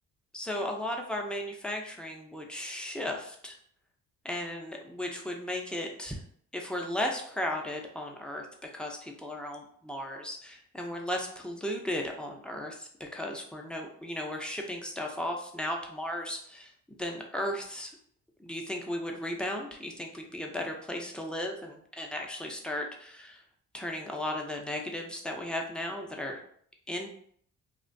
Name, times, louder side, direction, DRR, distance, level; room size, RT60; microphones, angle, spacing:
voice 1, 0.3-3.6 4.2-6.2 6.5-17.9 18.4-23.4 23.7-26.4 26.9-27.1, left 1 dB, 5° left, 1 dB, 0.4 m, -35 dB
2.4 x 2.2 x 2.5 m, 0.62 s
cardioid pair, 90°, 30 cm